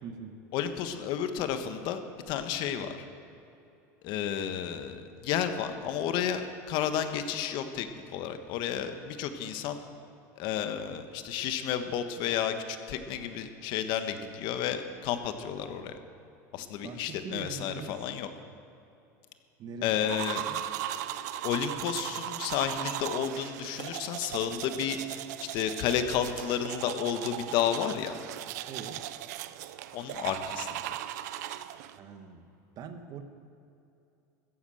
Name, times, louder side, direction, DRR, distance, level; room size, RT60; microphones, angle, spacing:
voice 1, 0.0-0.4 16.6-18.2 19.6-20.6 28.7-29.1 32.0-33.2, right 5 dB, 45° right, 8 dB, 1.5 m, -43 dB
voice 2, 0.5-2.0 2.3-3.0 4.0-6.4 6.7-9.8 10.4-16.0 16.5-18.3 19.8-20.4 21.4-28.1 29.9-30.7, left 9 dB, 60° left, 8 dB, 1.3 m, -31 dB
sound 1, 20.0-32.0, right 13 dB, 80° right, 0.6 m, -38 dB
14.0 x 10.0 x 7.8 m, 2.7 s
supercardioid pair, 110°, 9 cm